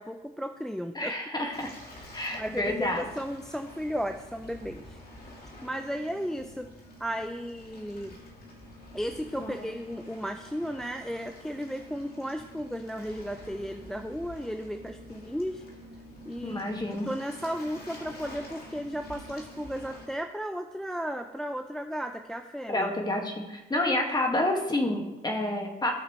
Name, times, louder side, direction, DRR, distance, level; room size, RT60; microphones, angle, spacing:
voice 1, 0.0-1.1 2.0-5.0 5.6-6.7 7.0-8.2 8.9-15.6 16.3-16.7 17.0-22.9, equal, ahead, 6 dB, 0.5 m, -34 dB
voice 2, 1.0-1.7 2.1-3.1 9.4-9.7 16.4-17.1 22.7-25.9, left 1 dB, 20° left, 2 dB, 1.8 m, -29 dB
Waves surf, 1.5-20.0, left 1 dB, 50° left, 2.6 m, -48 dB
15.0 x 5.8 x 3.1 m, 1.0 s
cardioid pair, 90°, 20 cm